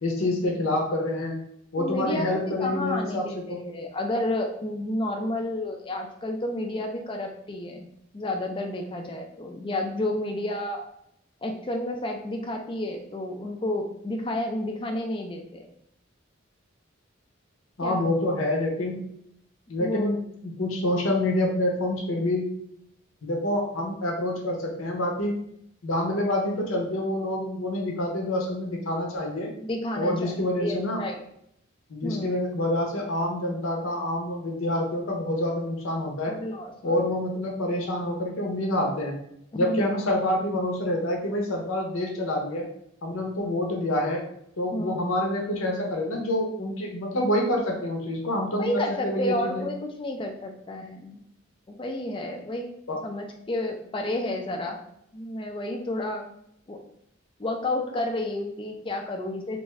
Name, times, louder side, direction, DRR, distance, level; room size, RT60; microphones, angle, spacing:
voice 1, 0.0-1.4 1.7-3.6 17.8-19.0 19.7-20.2 20.4-22.5 23.2-25.4 25.8-29.5 29.9-31.0 31.9-36.4 36.8-39.2 39.5-42.7 43.0-44.2 44.6-49.7 52.9-53.0, left 1 dB, 90° left, 0 dB, 0.7 m, -27 dB
voice 2, 1.8-3.2 3.5-7.9 8.1-10.9 11.4-15.7 17.8-18.2 19.8-20.1 29.6-31.2 32.0-32.4 36.2-36.9 39.5-39.9 44.7-45.0 48.6-51.2 51.7-52.7 53.0-54.8 55.1-56.2 56.7-56.8 57.4-59.6, left 1 dB, 25° left, 3 dB, 0.4 m, -31 dB
2.5 x 2.3 x 3.1 m, 0.73 s
head